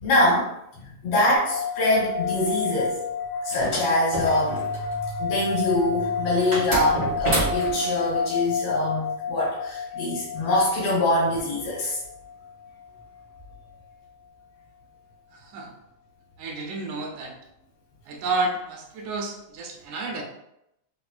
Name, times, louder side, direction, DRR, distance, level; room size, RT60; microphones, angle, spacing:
voice 1, 0.0-3.0 3.4-12.0, left 1 dB, 70° left, -4 dB, 2.2 m, -24 dB
sound 1, 1.4-12.7, left 5 dB, 85° left, 2.1 m, -30 dB
sound 2, 3.5-4.9 6.5-7.9, right 1 dB, 50° right, 0.6 m, -28 dB
voice 2, 15.3-15.7 16.4-17.3 18.1-20.2, right 3 dB, 80° right, 2 dB, 1.9 m, -30 dB
5.0 x 2.1 x 2.3 m, 0.81 s
omnidirectional pair, 3.4 m